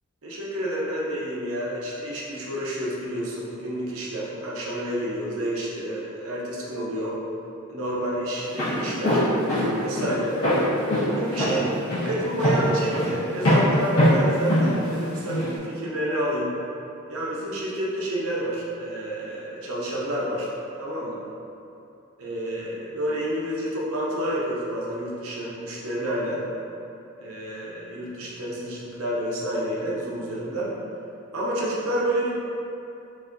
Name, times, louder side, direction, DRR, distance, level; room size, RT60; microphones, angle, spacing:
voice 1, 0.2-7.2 7.7-9.2 9.8-10.4 11.0-16.5 17.1-20.5 20.8-21.2 22.2-26.4 27.2-30.8 31.3-32.3, right 1 dB, 80° right, -6 dB, 0.8 m, -29 dB
Walk footsteps, 8.4-15.5, equal, 80° left, 1.3 m, -23 dB
6.0 x 2.7 x 2.5 m, 2.8 s
head